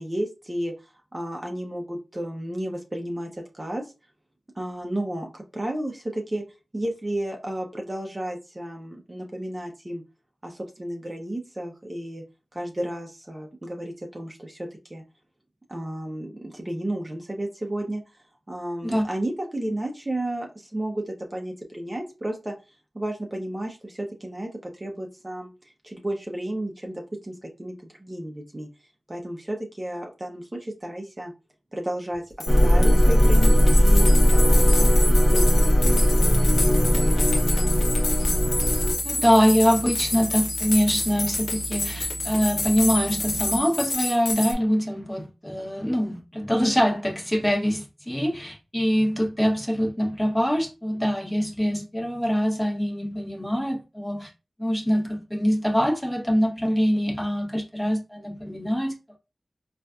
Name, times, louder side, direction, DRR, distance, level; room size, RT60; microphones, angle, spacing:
voice 1, 0.0-3.9 4.6-6.4 6.7-10.0 10.4-12.2 12.5-15.0 15.7-18.0 18.5-22.5 22.9-27.7 28.0-28.7 29.1-31.3 31.7-32.2 32.6-34.9 35.3-37.8, right 1 dB, 30° right, 0.7 m, -33 dB
sound 1, 32.1-32.2 32.4-44.5, left 2 dB, 75° left, 0.7 m, -29 dB
sound 2, 32.5-38.9, equal, 35° left, 1.2 m, -18 dB
sound 3, 38.0-43.6, right 5 dB, 70° right, 0.6 m, -38 dB
voice 2, 39.0-54.3 54.6-59.2, equal, 10° left, 1.0 m, -24 dB
4.0 x 2.5 x 2.3 m
cardioid pair, 50°, 0 cm